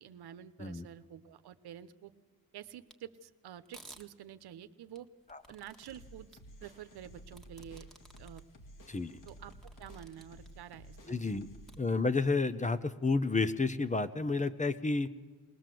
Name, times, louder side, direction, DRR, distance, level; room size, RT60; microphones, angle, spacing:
voice 1, 0.0-2.1 2.5-5.1 5.5-6.3 6.6-7.9 8.2-8.4 9.2-11.4, right 10 dB, 75° right, 12 dB, 1.0 m, -49 dB
sound 1, 2.9-3.0 3.7-4.0 5.0-6.0 6.3-6.4 7.3-8.4 8.8-8.9 9.3-10.5 11.7-11.8, right 1 dB, ahead, 1.7 m, -55 dB
sound 2, 5.7-11.8, equal, 55° left, 2.8 m, -54 dB
voice 2, 11.1-11.5 11.8-15.1, left 3 dB, 20° left, 13 dB, 0.9 m, -30 dB
21.0 x 19.0 x 7.7 m, 1.4 s
cardioid pair, 90°, 39 cm